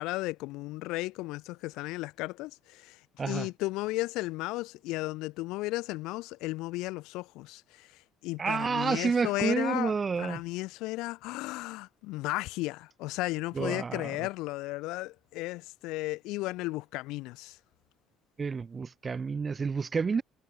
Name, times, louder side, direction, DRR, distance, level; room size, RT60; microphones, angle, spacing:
voice 1, 0.0-3.0 3.3-7.9 8.2-9.9 10.2-17.6, left 20 dB, 80° left, 0.4 m, -34 dB
voice 2, 8.4-10.4 13.5-14.3 18.4-20.2, right 5 dB, 20° right, 0.4 m, -30 dB
cardioid pair, 170°, 0 cm